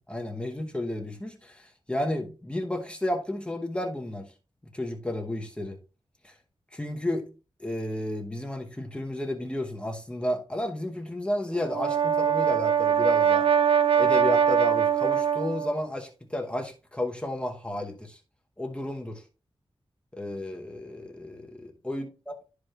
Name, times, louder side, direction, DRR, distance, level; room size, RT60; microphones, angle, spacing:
voice 1, 0.0-4.3 4.7-5.8 6.2-6.3 6.7-7.3 7.6-13.5 14.0-18.2 18.6-19.2 20.1-22.3, left 1 dB, 10° left, 1.0 m, -32 dB
Brass instrument, 11.6-15.8, right 7 dB, 75° right, 0.4 m, -22 dB
12.0 x 4.8 x 2.4 m
wide cardioid pair, 130°, 10 cm